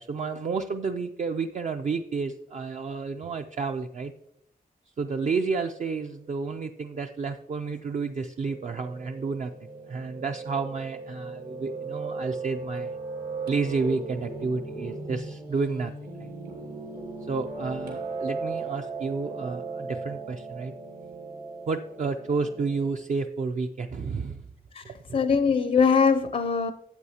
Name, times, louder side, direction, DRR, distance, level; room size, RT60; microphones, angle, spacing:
voice 1, 0.0-4.1 5.0-9.5 9.9-13.0 13.5-15.9 16.2-16.3 17.3-20.7 21.7-24.4 24.8-25.2, right 4 dB, 50° right, 0.4 m, -31 dB
Piano, 8.4-22.9, right 3 dB, 90° right, 2.7 m, -37 dB
voice 2, 25.1-26.7, left 5 dB, 50° left, 0.5 m, -22 dB
12.5 x 8.3 x 2.8 m
wide cardioid pair, 175°, 16 cm